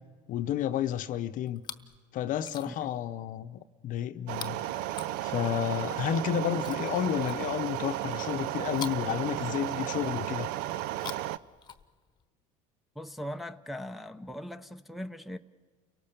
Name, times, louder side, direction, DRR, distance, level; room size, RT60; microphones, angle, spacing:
voice 1, 0.3-1.6 2.1-4.6 5.2-10.5, left 10 dB, 50° left, 0.8 m, -31 dB
Chewing mastication, 1.5-2.0 2.3-3.0 4.3-5.7 6.6-7.8 8.7-10.0 10.8-12.2 13.2-13.3, left 7 dB, 25° left, 1.1 m, -46 dB
sound 1, 4.3-11.4, right 14 dB, 70° right, 0.6 m, -34 dB
voice 2, 13.0-15.4, equal, ahead, 0.7 m, -40 dB
29.5 x 18.0 x 6.9 m
supercardioid pair, 100°, 17 cm